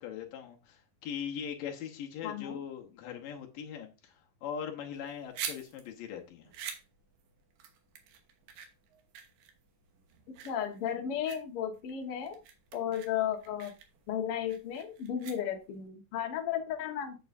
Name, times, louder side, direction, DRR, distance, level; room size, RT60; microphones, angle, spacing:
voice 1, 0.0-6.5, left 8 dB, 75° left, 2.6 m, -41 dB
voice 2, 2.2-2.6 10.4-12.3 12.7-13.7 14.1-17.2, left 9 dB, 55° left, 1.7 m, -34 dB
sound 1, 4.9-15.9, right 8 dB, 75° right, 2.7 m, -46 dB
8.6 x 8.0 x 2.6 m
omnidirectional pair, 4.1 m